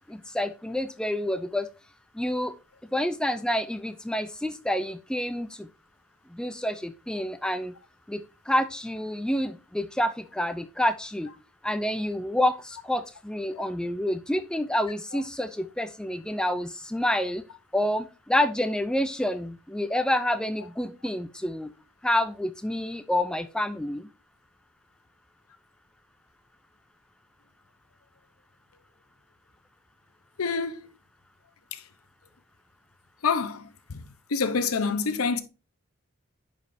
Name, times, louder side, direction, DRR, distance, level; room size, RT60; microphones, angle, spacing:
voice 1, 0.1-1.7 2.2-2.5 2.9-5.7 6.3-7.7 8.1-11.3 11.6-17.4 17.7-21.7 22.0-24.1, left 1 dB, 5° left, 0.4 m, -28 dB
voice 2, 30.4-30.9 31.7-31.8 33.2-34.0 34.3-35.4, left 5 dB, 90° left, 0.8 m, -27 dB
9.5 x 5.1 x 2.6 m
head